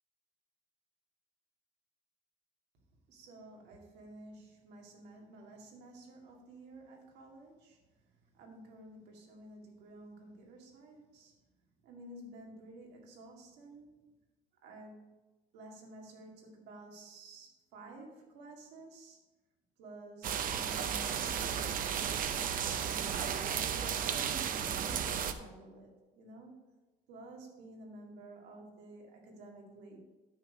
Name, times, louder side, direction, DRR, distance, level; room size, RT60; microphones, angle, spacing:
voice 1, 3.1-7.8 8.3-11.4 11.8-14.1 14.6-15.1 15.5-19.2 19.8-22.1 22.8-26.6 27.1-30.0, right 2 dB, 90° right, 0 dB, 2.2 m, -52 dB
sound 1, 20.2-25.3, right 8 dB, 55° right, 0.7 m, -34 dB
9.3 x 6.6 x 5.1 m, 1.2 s
cardioid pair, 110°, 17 cm